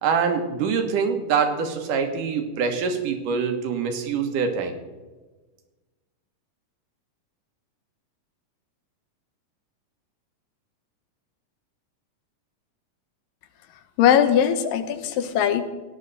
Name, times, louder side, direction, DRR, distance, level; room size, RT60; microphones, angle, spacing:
voice 1, 0.0-4.8, right 6 dB, 75° right, 5 dB, 2.7 m, -24 dB
voice 2, 14.0-15.6, left 9 dB, 90° left, 10 dB, 2.6 m, -20 dB
17.0 x 10.0 x 4.1 m, 1.2 s
omnidirectional pair, 3.9 m